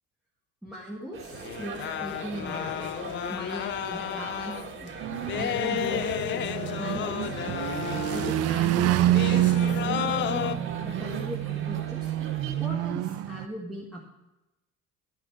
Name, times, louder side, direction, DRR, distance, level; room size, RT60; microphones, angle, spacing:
voice 1, 0.6-2.9 3.3-4.5 4.8-4.9 5.4-7.3 8.1-12.1 12.6-14.0, equal, ahead, -4 dB, 1.7 m, -38 dB
sound 1, 1.1-12.7, right 5 dB, 40° right, 1.8 m, -42 dB
sound 2, 1.3-8.7 9.1-10.6, left 11 dB, 40° left, 0.4 m, -32 dB
sound 3, 5.0-13.5, right 13 dB, 60° right, 0.6 m, -28 dB
12.0 x 10.0 x 4.7 m, 0.97 s
cardioid pair, 150°, 29 cm